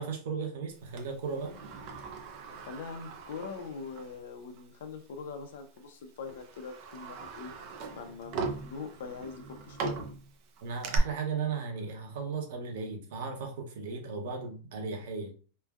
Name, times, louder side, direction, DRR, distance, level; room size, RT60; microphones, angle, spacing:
voice 1, 0.0-1.6 10.6-15.3, right 5 dB, 65° right, 3 dB, 0.8 m, -36 dB
Sliding door, 1.0-4.2 4.6-4.7 5.6-5.8 6.3-11.0, right 5 dB, 40° right, 0.4 m, -40 dB
voice 2, 2.6-7.5 7.9-10.1, left 5 dB, 80° left, 6 dB, 0.5 m, -42 dB
3.2 x 2.1 x 2.3 m, 0.38 s
supercardioid pair, 170°, 0 cm